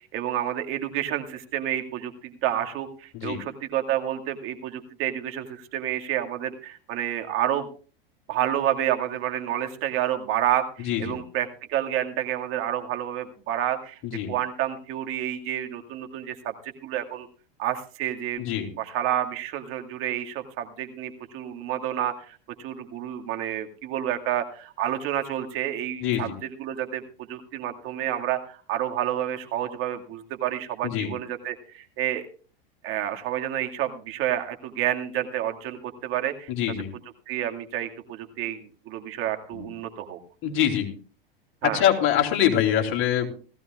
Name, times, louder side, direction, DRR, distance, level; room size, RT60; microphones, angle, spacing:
voice 1, 0.1-7.7 8.3-14.0 14.3-17.3 17.6-18.4 18.8-26.3 26.6-27.0 27.3-32.3 32.8-36.5 37.3-38.6 38.9-40.2 41.6-41.8, right 11 dB, 45° right, 4 dB, 2.1 m, -29 dB
voice 2, 10.8-11.2 14.0-14.3 18.4-18.7 26.0-26.4 30.8-31.1 36.5-36.9 39.5-39.7 40.4-40.9 41.6-43.3, left 10 dB, 45° left, 3 dB, 3.2 m, -24 dB
18.0 x 15.5 x 2.4 m, 0.38 s
hypercardioid pair, 100°, 29 cm